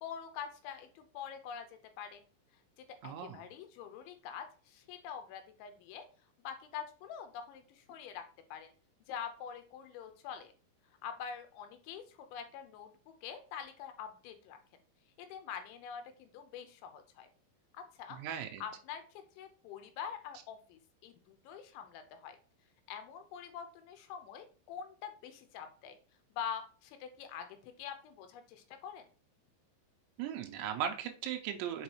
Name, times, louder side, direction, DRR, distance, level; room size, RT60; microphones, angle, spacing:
voice 1, 0.0-1.7 2.0-2.2 2.8-6.1 6.4-8.2 8.5-8.7 9.1-10.5 11.0-14.6 15.2-17.3 17.7-18.2 18.6-22.4 22.9-26.0 26.3-29.1, left 8 dB, 85° left, 8 dB, 3.2 m, -45 dB
voice 2, 3.0-3.4 18.2-18.6 30.2-31.8, right 9 dB, 90° right, 4 dB, 3.0 m, -37 dB
7.2 x 4.9 x 3.0 m, 0.39 s
omnidirectional pair, 5.2 m